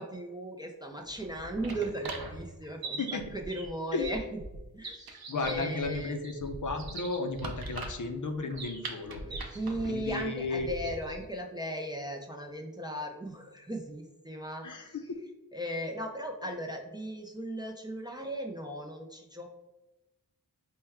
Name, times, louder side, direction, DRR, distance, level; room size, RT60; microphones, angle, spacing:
voice 1, 0.0-4.4 4.7-5.2 5.4-6.2 9.2-14.9 15.5-19.5, right 1 dB, 10° right, 2 dB, 0.4 m, -37 dB
sound 1, 1.0-11.3, right 3 dB, 65° right, 0.6 m, -41 dB
voice 2, 3.0-3.3 3.9-4.1 5.3-9.2 9.8-10.7 14.6-15.2, left 3 dB, 50° left, 6 dB, 0.5 m, -34 dB
4.3 x 2.2 x 3.4 m, 1.0 s
cardioid pair, 45°, 39 cm